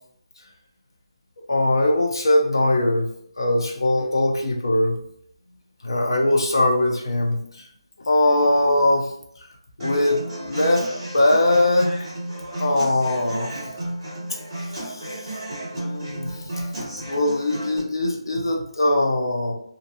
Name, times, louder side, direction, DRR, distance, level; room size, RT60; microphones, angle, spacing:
voice 1, 1.5-3.1 3.4-5.0 5.8-7.7 8.1-9.1 9.8-10.9 11.1-11.9 12.6-13.5 14.7-15.3 15.7-16.5 17.0-19.5, left 1 dB, 50° left, 1 dB, 0.5 m, -21 dB
Human voice / Acoustic guitar, 9.8-17.8, right 1 dB, 10° right, 0.9 m, -33 dB
2.5 x 2.1 x 2.6 m, 0.68 s
figure-of-eight pair, 175°, 3 cm